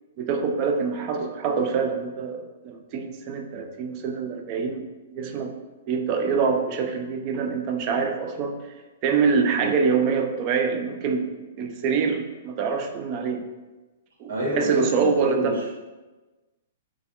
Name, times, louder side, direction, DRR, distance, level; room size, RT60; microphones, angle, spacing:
voice 1, 0.2-5.5 5.9-8.6 9.0-11.3 11.5-13.5 14.2-15.6, right 5 dB, 40° right, 5 dB, 0.3 m, -25 dB
voice 2, 14.3-15.7, right 1 dB, 65° right, -6 dB, 1.4 m, -29 dB
3.2 x 2.3 x 2.5 m, 1.2 s
figure-of-eight pair, 115°, 0 cm